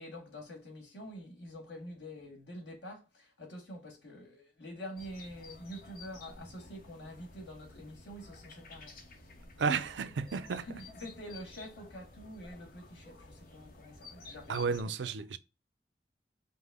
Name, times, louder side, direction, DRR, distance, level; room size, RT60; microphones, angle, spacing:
voice 1, 0.0-15.1, equal, 90° left, 1.8 m, -47 dB
sound 1, 5.0-14.8, left 3 dB, 55° left, 0.8 m, -53 dB
voice 2, 9.6-10.7 14.5-15.4, right 5 dB, 85° right, 0.5 m, -32 dB
5.3 x 2.1 x 3.5 m
head